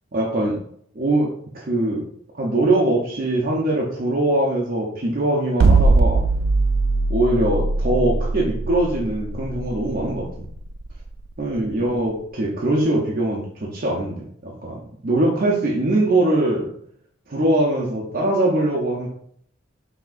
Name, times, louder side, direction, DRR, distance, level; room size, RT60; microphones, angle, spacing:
voice 1, 0.1-0.6 0.9-2.0 2.4-6.2 7.1-10.4 11.4-16.7 17.3-19.1, right 1 dB, 45° right, -3 dB, 0.6 m, -22 dB
sound 1, 5.6-11.8, right 3 dB, 85° right, 0.3 m, -20 dB
5.7 x 2.8 x 2.5 m, 0.66 s
head